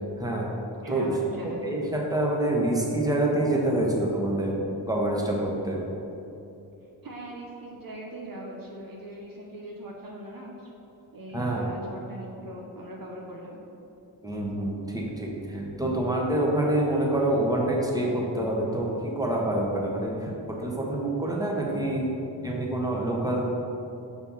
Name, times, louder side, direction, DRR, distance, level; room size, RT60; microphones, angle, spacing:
voice 1, 0.2-0.5 0.9-1.1 1.6-4.6 4.9-5.8 11.3-11.6 14.2-20.3 20.6-22.1 22.4-23.5, right 1 dB, 10° right, -2 dB, 1.4 m, -26 dB
voice 2, 0.8-1.7 7.0-10.7 11.1-13.6 20.3-20.4, right 1 dB, 50° right, -1 dB, 1.0 m, -40 dB
5.7 x 4.5 x 5.6 m, 2.9 s
cardioid pair, 50°, 44 cm